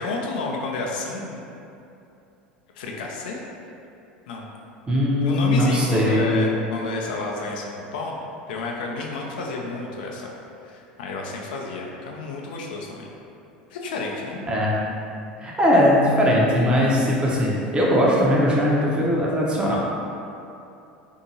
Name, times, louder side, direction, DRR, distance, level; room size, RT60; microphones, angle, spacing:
voice 1, 0.0-1.4 2.7-3.4 4.3-4.5 5.2-8.1 8.5-10.3 10.6-13.1 13.7-14.5, left 3 dB, 70° left, -1 dB, 0.4 m, -31 dB
voice 2, 4.9-6.4 14.5-14.8 15.4-19.8, left 1 dB, 20° right, -5 dB, 0.7 m, -20 dB
2.7 x 2.5 x 2.7 m, 2.7 s
hypercardioid pair, 80°, 5 cm